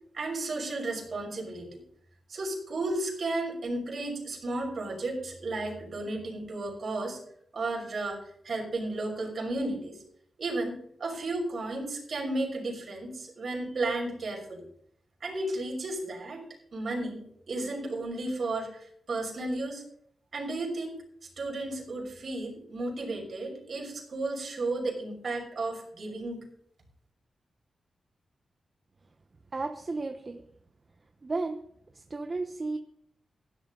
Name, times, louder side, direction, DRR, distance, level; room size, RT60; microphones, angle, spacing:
voice 1, 0.1-1.8 2.3-7.2 7.5-8.2 8.4-10.0 10.4-14.7 15.2-16.4 16.7-19.8 20.3-21.0 21.4-26.4, right 2 dB, 55° right, 0 dB, 5.9 m, -33 dB
voice 2, 29.5-30.4 31.2-31.6 31.9-32.8, right 3 dB, 35° right, 6 dB, 1.0 m, -33 dB
16.0 x 11.5 x 3.9 m, 0.66 s
wide cardioid pair, 95°, 0 cm